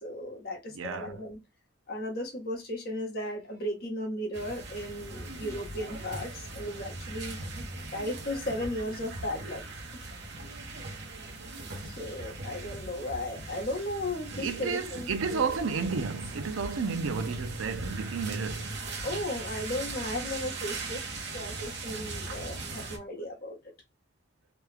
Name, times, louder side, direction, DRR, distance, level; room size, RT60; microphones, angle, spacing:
voice 1, 0.0-1.4 1.9-7.4 7.9-9.6 9.9-10.1 11.8-15.7 19.0-21.0 21.3-23.6, left 1 dB, 50° left, 1.1 m, -35 dB
voice 2, 0.8-1.1 14.4-18.8, right 5 dB, 75° right, 0.5 m, -32 dB
sound 1, 4.3-23.0, right 2 dB, 55° right, 0.9 m, -39 dB
3.1 x 2.3 x 3.3 m
head